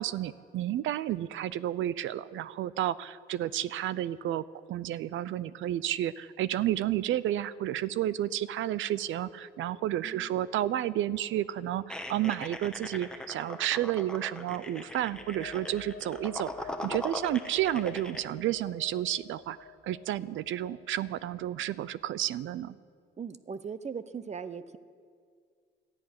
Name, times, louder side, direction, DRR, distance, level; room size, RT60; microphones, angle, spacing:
voice 1, 0.0-19.6 19.8-22.7, right 12 dB, 75° right, 18 dB, 0.5 m, -31 dB
Telephone, 6.7-7.0 7.3-7.6 7.9-8.2 8.5-8.8 9.1-9.4 9.7-10.0 10.3-10.6 10.9-11.2 11.5-11.8 12.1-12.4 12.7-13.0 13.3-13.6 13.9-14.2 14.5-14.8 15.1-15.4 15.7-16.0 16.3-16.6 16.9-17.2 17.5-17.8, left 6 dB, 25° left, 2.0 m, -54 dB
sound 1, 11.9-18.2, left 1 dB, 5° left, 1.2 m, -40 dB
sound 2, 15.0-22.5, left 7 dB, 65° left, 1.3 m, -50 dB
voice 2, 23.2-24.8, right 6 dB, 35° right, 14 dB, 0.8 m, -39 dB
13.0 x 10.5 x 9.6 m, 2.1 s
cardioid pair, 90°, 20 cm